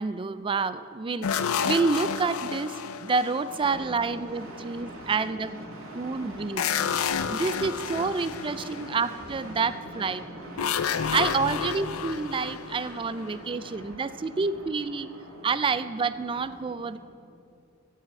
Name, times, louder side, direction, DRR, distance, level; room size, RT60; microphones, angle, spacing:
voice 1, 0.0-1.4 1.6-5.7 5.9-6.6 7.3-10.2 11.1-15.1 15.4-17.0, right 4 dB, 25° right, 14 dB, 0.3 m, -28 dB
sound 1, 1.2-4.2 6.6-9.3 10.6-13.7, left 7 dB, 85° left, 0.5 m, -30 dB
voice 2, 3.7-9.0 9.3-9.6 9.9-11.2 12.0-12.1 12.7-13.2 13.6-14.0, right 1 dB, 75° right, -4 dB, 3.1 m, -42 dB
14.5 x 5.6 x 8.8 m, 2.6 s
head